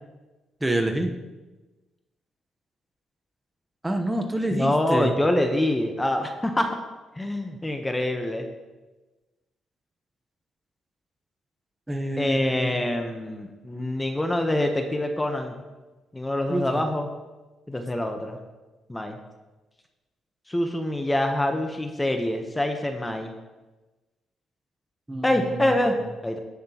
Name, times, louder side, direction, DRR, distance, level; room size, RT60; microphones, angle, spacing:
voice 1, 0.6-1.2 3.8-5.1 11.9-12.7 16.5-16.8 25.1-25.8, right 1 dB, 10° right, 4 dB, 1.0 m, -27 dB
voice 2, 4.5-6.8 7.2-8.5 12.2-15.6 16.1-17.1 17.7-18.4 18.9-19.2 20.5-23.3 25.2-26.0 26.2-26.4, left 1 dB, 15° left, 5 dB, 0.9 m, -25 dB
16.5 x 5.9 x 2.9 m, 1.2 s
cardioid pair, 90°, 0 cm